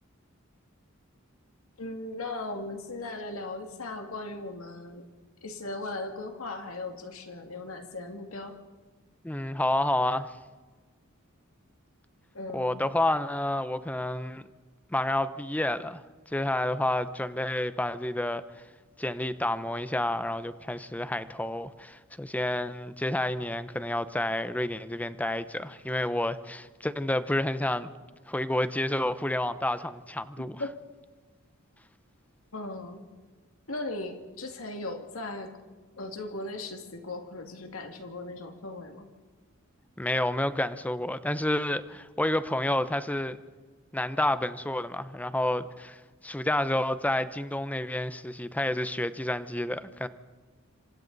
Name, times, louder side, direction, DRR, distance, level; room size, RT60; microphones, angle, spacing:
voice 1, 1.8-5.0 5.4-8.6 12.3-12.8 30.6-30.7 32.5-33.0 33.7-35.5 36.0-39.1, left 2 dB, 75° left, 2.2 m, -38 dB
voice 2, 9.2-10.3 12.5-14.4 14.9-16.0 16.3-18.4 19.0-27.9 28.3-30.6 40.0-43.4 43.9-50.1, left 1 dB, 5° left, 0.7 m, -29 dB
27.0 x 25.5 x 4.0 m
head